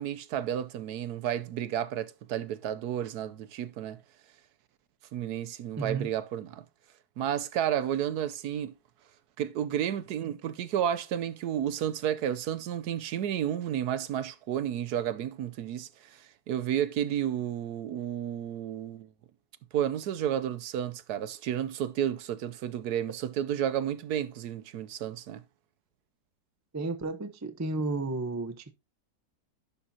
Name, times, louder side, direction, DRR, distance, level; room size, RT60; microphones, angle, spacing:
voice 1, 0.0-4.0 5.1-6.6 7.2-8.7 9.4-19.1 19.7-25.4, right 10 dB, 70° right, 1.1 m, -32 dB
voice 2, 5.8-6.1 26.7-28.7, right 3 dB, 25° right, 0.3 m, -32 dB
11.0 x 6.9 x 2.8 m
omnidirectional pair, 1.9 m